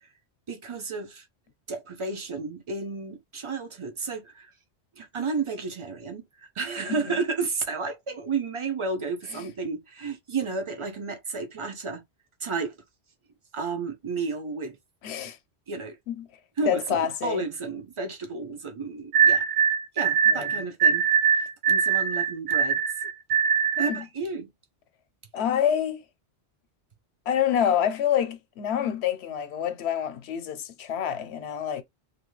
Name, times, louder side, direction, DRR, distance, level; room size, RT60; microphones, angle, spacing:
voice 1, 0.5-1.3 1.7-4.5 5.0-12.0 12.4-12.7 13.5-14.8 15.7-16.0 16.6-19.5 19.9-21.1 21.7-22.8 23.8-24.5, right 4 dB, 30° right, 0.7 m, -32 dB
voice 2, 15.0-15.4 16.1-16.3 16.7-17.4 20.3-20.6 23.8-24.0 25.3-26.0 27.3-31.8, left 9 dB, 80° left, 0.9 m, -27 dB
sound 1, 19.1-24.0, right 7 dB, 65° right, 0.7 m, -22 dB
2.9 x 2.7 x 3.1 m
omnidirectional pair, 1.1 m